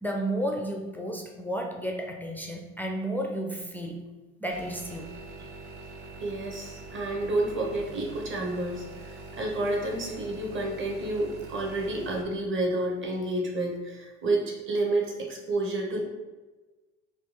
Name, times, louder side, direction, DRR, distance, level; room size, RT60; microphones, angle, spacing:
voice 1, 0.0-4.0 4.4-5.1, right 1 dB, 5° left, 1 dB, 0.4 m, -32 dB
sound 1, 4.5-12.2, right 3 dB, 90° right, 0.5 m, -44 dB
voice 2, 6.2-16.0, right 2 dB, 35° right, 0 dB, 1.0 m, -30 dB
3.5 x 2.3 x 3.0 m, 1.2 s
hypercardioid pair, 70°, 34 cm